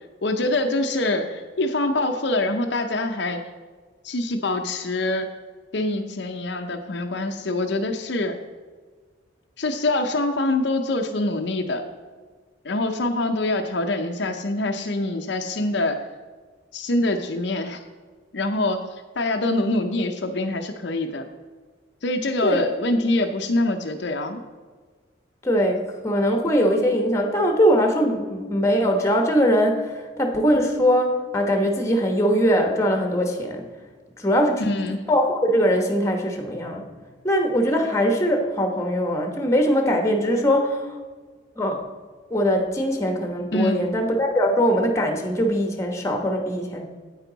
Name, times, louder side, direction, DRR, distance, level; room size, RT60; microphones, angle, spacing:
voice 1, 0.2-3.4 4.0-5.3 5.7-8.4 9.6-11.8 12.6-16.0 16.7-17.8 18.3-18.8 19.2-21.3 22.0-24.4 34.6-35.0 43.5-43.8, left 2 dB, 60° left, 5 dB, 0.6 m, -24 dB
voice 2, 25.4-33.6 34.2-34.6 35.1-36.8 37.2-41.0 41.6-41.8 42.3-46.8, equal, 15° left, 4 dB, 1.1 m, -21 dB
9.1 x 9.0 x 3.9 m, 1.4 s
head